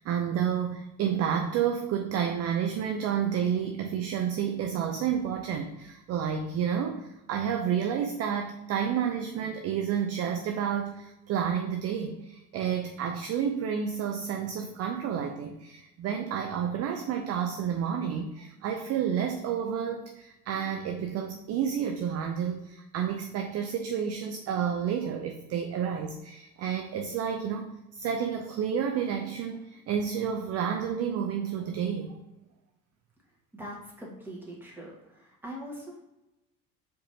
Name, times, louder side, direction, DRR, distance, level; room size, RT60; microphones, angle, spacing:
voice 1, 0.0-32.2, right 8 dB, 35° right, 4 dB, 0.4 m, -30 dB
voice 2, 33.5-36.0, equal, 5° right, -4 dB, 1.6 m, -42 dB
4.6 x 3.8 x 2.7 m, 0.95 s
hypercardioid pair, 65°, 44 cm